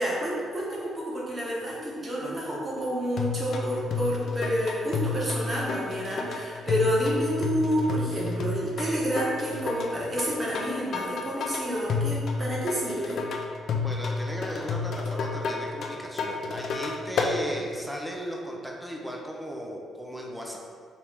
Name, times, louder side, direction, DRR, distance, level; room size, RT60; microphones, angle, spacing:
voice 1, 0.0-13.2, equal, 30° right, -6 dB, 1.4 m, -29 dB
sound 1, 3.2-17.4, left 4 dB, 65° left, 0.4 m, -31 dB
voice 2, 13.8-20.6, equal, ahead, -1 dB, 0.6 m, -36 dB
4.6 x 2.7 x 3.6 m, 2.2 s
cardioid pair, 90°, 0 cm